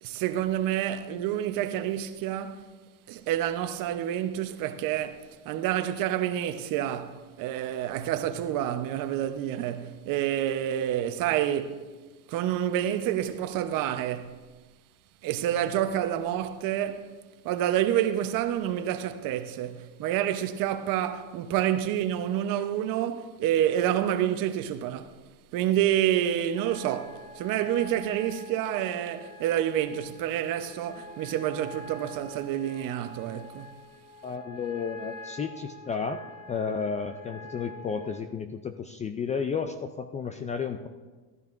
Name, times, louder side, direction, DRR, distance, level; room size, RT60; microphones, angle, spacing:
voice 1, 0.0-2.6 3.1-11.8 12.3-14.4 15.2-17.1 17.4-25.2 25.5-33.7, right 11 dB, 50° right, 1.0 m, -28 dB
sound 1, 26.5-38.2, left 1 dB, 35° left, 1.9 m, -46 dB
voice 2, 34.2-36.2 36.5-40.9, left 6 dB, 20° left, 0.4 m, -32 dB
15.0 x 13.5 x 2.6 m
supercardioid pair, 105°, 43 cm